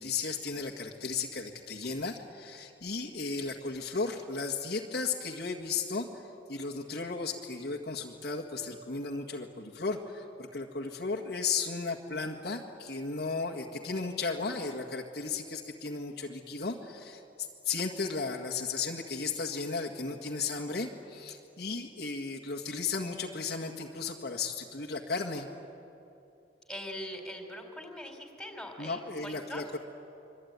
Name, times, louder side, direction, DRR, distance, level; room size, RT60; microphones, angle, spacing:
voice 1, 0.0-25.5 28.8-29.8, left 4 dB, 65° left, 0 dB, 1.8 m, -35 dB
voice 2, 26.7-29.6, equal, 5° left, 3 dB, 4.0 m, -42 dB
25.5 x 24.0 x 9.5 m, 2.8 s
head